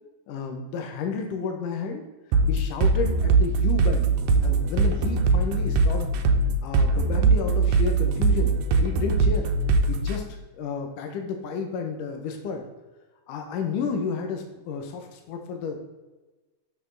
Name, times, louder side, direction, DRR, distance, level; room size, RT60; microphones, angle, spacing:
voice 1, 0.3-2.1 2.5-4.1 4.4-6.1 6.6-9.5 9.9-10.2 10.5-12.7 13.3-15.8, left 5 dB, 80° left, 4 dB, 2.4 m, -31 dB
sound 1, 2.3-10.2, right 4 dB, 85° right, 2.3 m, -21 dB
7.0 x 6.7 x 3.8 m, 1.2 s
omnidirectional pair, 3.7 m